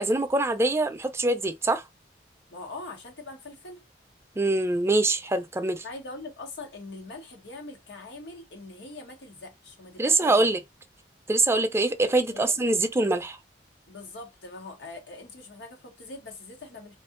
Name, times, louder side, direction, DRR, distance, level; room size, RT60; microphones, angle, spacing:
voice 1, 0.0-1.8 4.4-5.8 10.0-10.6 11.3-13.4, right 2 dB, 15° right, 0.4 m, -24 dB
voice 2, 2.5-3.8 5.8-10.5 12.3-12.8 13.9-17.0, left 2 dB, 90° left, 1.2 m, -42 dB
2.7 x 2.5 x 3.7 m
head